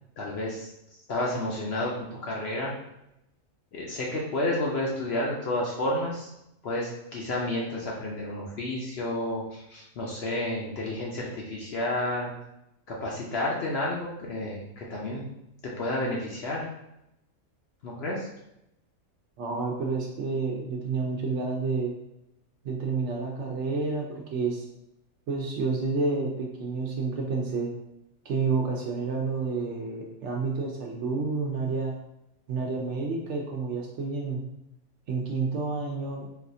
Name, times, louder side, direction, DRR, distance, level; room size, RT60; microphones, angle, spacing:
voice 1, 0.2-0.7 1.1-2.7 3.7-6.3 6.6-12.3 12.9-15.3 15.8-16.7 17.8-18.3, left 1 dB, 60° left, -3 dB, 0.7 m, -31 dB
voice 2, 19.4-21.9 22.6-24.6 25.3-27.7 28.2-32.0 32.5-34.4 35.1-36.5, right 4 dB, 65° right, 0 dB, 0.8 m, -29 dB
4.1 x 2.3 x 2.6 m, 0.84 s
omnidirectional pair, 1.5 m